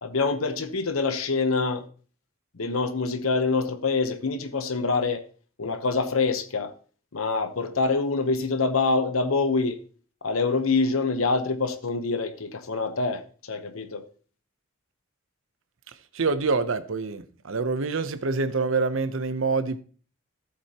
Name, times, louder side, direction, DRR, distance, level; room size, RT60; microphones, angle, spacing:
voice 1, 0.0-1.9 2.5-5.2 5.6-6.7 7.1-9.8 10.2-14.0, left 4 dB, 80° left, 1.0 m, -25 dB
voice 2, 16.1-19.8, right 4 dB, 70° right, 0.7 m, -26 dB
14.0 x 7.9 x 2.9 m
head